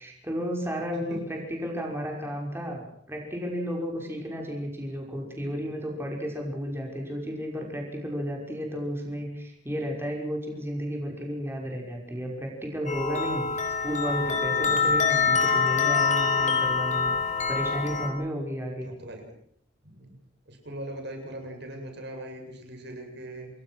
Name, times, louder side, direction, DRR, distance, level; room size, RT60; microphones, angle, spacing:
voice 1, 0.0-2.8 3.1-18.9, equal, 15° right, 0 dB, 5.8 m, -33 dB
sound 1, 12.9-18.1, left 5 dB, 40° left, 5.2 m, -25 dB
voice 2, 18.8-19.3 19.8-20.1 20.5-23.5, right 1 dB, 65° right, 3 dB, 7.8 m, -40 dB
28.0 x 21.5 x 6.4 m, 0.64 s
head